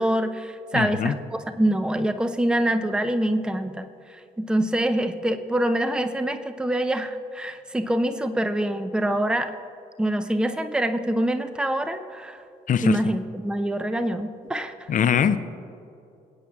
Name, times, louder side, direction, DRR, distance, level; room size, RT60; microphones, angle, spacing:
voice 1, 0.0-9.5 10.0-12.4 12.8-14.7, right 1 dB, 5° right, 9 dB, 0.6 m, -25 dB
voice 2, 0.7-1.1 12.7-13.0 14.9-15.4, left 8 dB, 40° left, 11 dB, 0.6 m, -22 dB
24.5 x 9.2 x 2.4 m, 2.6 s
figure-of-eight pair, 40°, 20 cm